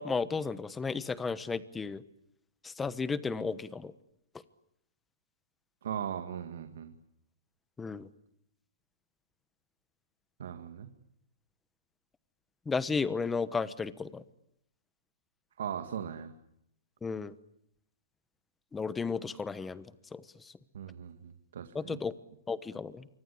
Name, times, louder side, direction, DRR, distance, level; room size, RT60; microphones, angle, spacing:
voice 1, 0.0-2.0 2.6-3.9 7.8-8.1 12.7-14.2 17.0-17.3 18.7-20.5 21.7-22.1 22.5-23.1, left 4 dB, 10° left, 15 dB, 1.2 m, -34 dB
voice 2, 5.8-6.9 10.4-10.9 15.6-16.3 20.7-22.0, right 8 dB, 75° right, 8 dB, 2.1 m, -39 dB
26.5 x 24.5 x 8.6 m, 0.78 s
hypercardioid pair, 155°, 0 cm